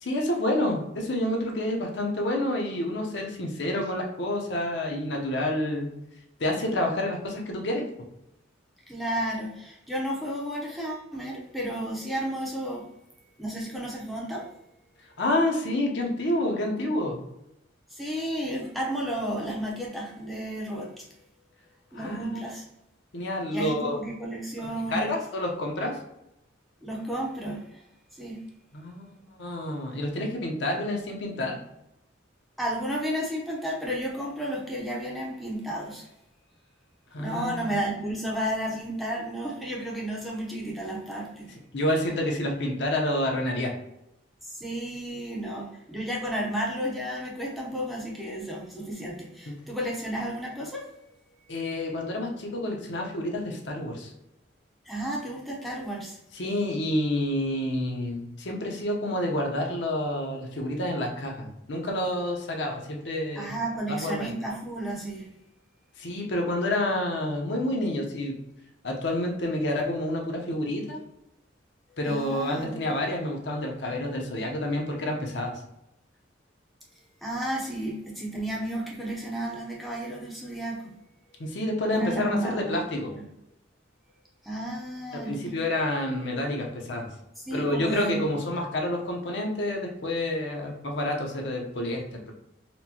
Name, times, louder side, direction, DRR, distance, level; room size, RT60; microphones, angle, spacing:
voice 1, 0.0-5.9 6.4-7.8 15.2-17.2 21.9-22.4 23.1-24.0 24.6-26.0 28.7-29.1 29.4-31.6 37.1-37.8 41.7-43.7 49.5-49.6 51.5-54.1 56.3-63.5 63.9-64.3 66.0-68.3 68.8-71.0 72.0-75.5 81.4-83.1 85.1-87.1 87.5-92.3, left 1 dB, 65° left, 1 dB, 0.7 m, -28 dB
voice 2, 8.9-12.9 13.4-14.5 17.9-21.0 21.9-22.6 23.5-25.1 26.8-27.8 28.1-28.4 32.6-36.1 37.2-41.5 44.5-50.9 54.9-56.2 63.4-65.3 72.1-72.7 77.2-80.9 81.9-82.8 83.1-83.2 84.4-85.5 87.5-88.3, right 1 dB, ahead, -4 dB, 0.6 m, -32 dB
4.3 x 2.1 x 2.8 m, 0.84 s
head